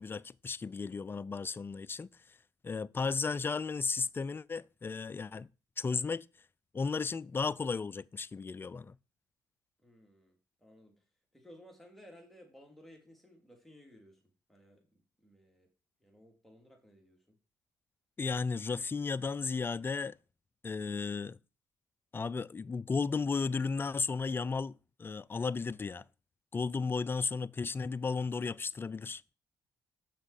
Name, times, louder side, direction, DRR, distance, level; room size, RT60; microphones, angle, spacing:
voice 1, 0.0-2.1 2.6-5.5 5.8-6.3 6.7-9.0 18.2-20.2 20.6-21.4 22.1-24.7 25.0-26.0 26.5-29.2, left 4 dB, 25° left, 0.4 m, -34 dB
voice 2, 9.8-14.2 14.5-15.7 16.0-17.4, equal, 5° left, 3.1 m, -58 dB
6.3 x 6.1 x 5.0 m
supercardioid pair, 60°, 8 cm